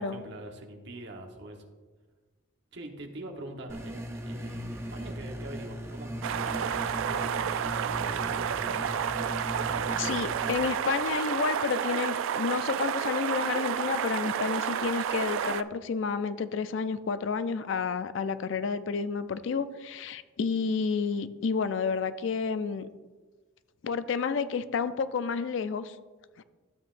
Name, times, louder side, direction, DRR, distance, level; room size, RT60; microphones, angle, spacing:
voice 1, 0.0-1.6 2.7-9.0 9.5-9.8, right 1 dB, 55° right, 3 dB, 1.1 m, -44 dB
sound 1, 3.7-10.6, equal, 10° right, 0.5 m, -38 dB
sound 2, 6.2-15.6, right 8 dB, 70° right, 0.3 m, -30 dB
voice 2, 10.0-22.9 23.8-26.0 26.4-26.5, left 5 dB, 60° left, 13 dB, 0.4 m, -30 dB
12.5 x 7.6 x 2.5 m, 1.3 s
head